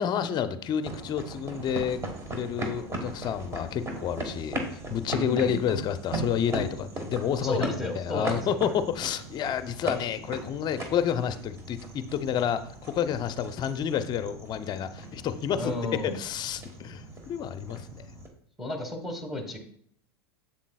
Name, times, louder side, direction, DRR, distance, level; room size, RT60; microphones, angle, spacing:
voice 1, 0.0-2.0 2.3-4.6 4.9-7.6 8.0-18.0, left 8 dB, 35° left, 11 dB, 0.6 m, -29 dB
sound 1, 0.8-18.3, right 2 dB, 20° right, 1.4 m, -38 dB
voice 2, 5.1-5.6 7.4-8.6 15.6-16.1 18.6-19.6, left 1 dB, ahead, 2 dB, 1.4 m, -33 dB
7.4 x 7.2 x 2.3 m, 0.63 s
hypercardioid pair, 105°, 13 cm